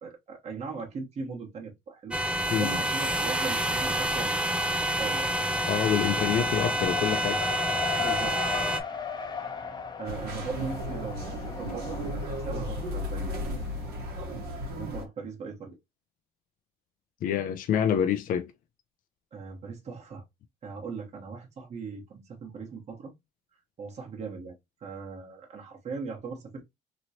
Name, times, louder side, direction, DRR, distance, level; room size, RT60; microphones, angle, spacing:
voice 1, 0.0-2.2 2.5-4.5 5.0-5.3 8.0-8.4 10.0-13.4 14.7-15.8 19.3-20.2 20.6-23.1 23.8-26.6, right 5 dB, 40° right, 1.1 m, -39 dB
sound 1, 2.1-8.8, right 1 dB, 5° right, 0.4 m, -28 dB
Race car auto racing, 2.2-3.0 3.3-14.6, left 6 dB, 25° left, 0.8 m, -38 dB
voice 2, 5.7-7.4 17.2-18.5, left 9 dB, 55° left, 0.4 m, -27 dB
sound 2, 10.0-15.0, equal, 70° right, 1.1 m, -34 dB
3.0 x 2.9 x 2.7 m
cardioid pair, 110°, 17 cm